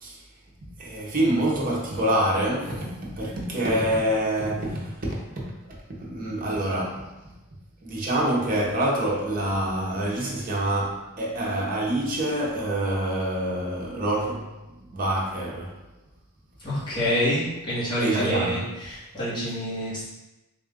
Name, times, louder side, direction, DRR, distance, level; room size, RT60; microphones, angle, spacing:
voice 1, 0.8-2.9 3.1-5.2 6.0-7.1 7.8-14.5 14.9-15.8 18.0-18.7, right 1 dB, 40° right, 0.8 m, -26 dB
voice 2, 16.6-20.0, equal, 20° left, 1.4 m, -27 dB
3.6 x 2.5 x 3.6 m
head